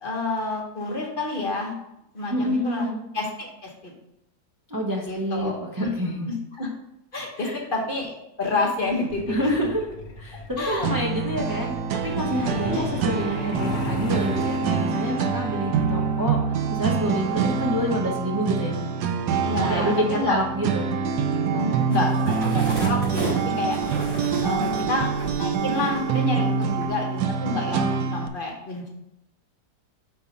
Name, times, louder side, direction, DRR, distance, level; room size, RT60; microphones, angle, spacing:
voice 1, 0.0-1.7 2.1-2.9 3.1-3.9 5.1-5.9 6.3-6.7 7.1-9.4 10.3-10.9 12.7-12.8 19.4-20.4 21.6-23.8 24.4-25.1 25.3-28.9, left 2 dB, 35° left, -1 dB, 1.2 m, -29 dB
voice 2, 2.3-3.0 4.7-6.3 7.4-7.6 9.3-18.8 19.7-20.9 21.5-21.8, equal, 25° right, -2 dB, 0.4 m, -28 dB
Truck, 9.1-21.4 22.6-22.8 23.2-23.4 23.7-24.0 24.3-24.4 24.9-25.0, left 3 dB, 60° left, 1.3 m, -38 dB
sound 1, 10.8-28.3, right 5 dB, 80° right, 1.2 m, -25 dB
sound 2, 21.9-26.2 26.6-26.8, right 2 dB, 45° right, 2.5 m, -33 dB
5.4 x 4.4 x 5.2 m, 0.85 s
omnidirectional pair, 1.8 m